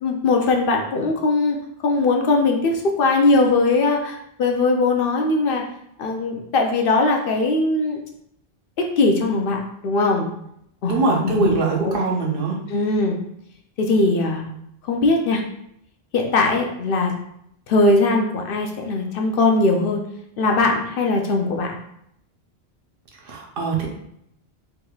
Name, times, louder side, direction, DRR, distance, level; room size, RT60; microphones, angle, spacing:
voice 1, 0.0-1.6 1.8-5.6 6.0-8.0 8.8-10.3 10.8-12.0 12.7-13.2 13.8-14.5 14.9-15.4 16.1-17.1 17.7-20.0 20.4-21.8, left 3 dB, 65° left, 2 dB, 0.7 m, -20 dB
voice 2, 10.9-12.6 23.3-23.9, right 3 dB, 60° right, -1 dB, 0.9 m, -22 dB
3.5 x 3.0 x 2.3 m, 0.74 s
omnidirectional pair, 1.1 m